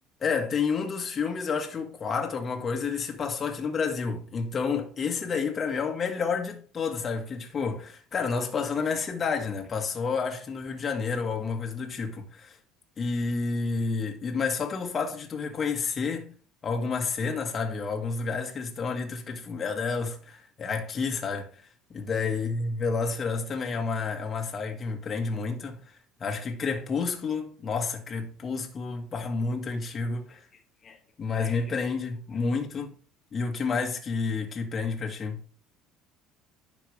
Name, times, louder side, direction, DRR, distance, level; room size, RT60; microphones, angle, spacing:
voice 1, 0.2-12.6 13.0-16.3 16.6-21.5 21.9-25.8 26.2-30.4 30.8-32.9 33.3-35.4, left 5 dB, 30° left, 1.9 m, -30 dB
10.5 x 6.8 x 3.5 m
cardioid pair, 130°, 0 cm